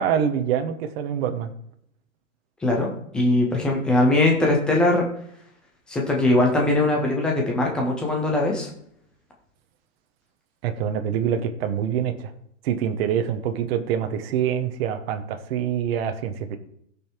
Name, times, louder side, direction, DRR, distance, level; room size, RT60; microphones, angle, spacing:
voice 1, 0.0-1.5 10.6-12.3 12.6-16.6, right 8 dB, 45° right, 7 dB, 1.2 m, -25 dB
voice 2, 2.6-5.0 5.9-8.7, left 2 dB, ahead, -1 dB, 0.3 m, -21 dB
16.0 x 5.6 x 4.5 m, 0.72 s
supercardioid pair, 155°, 40 cm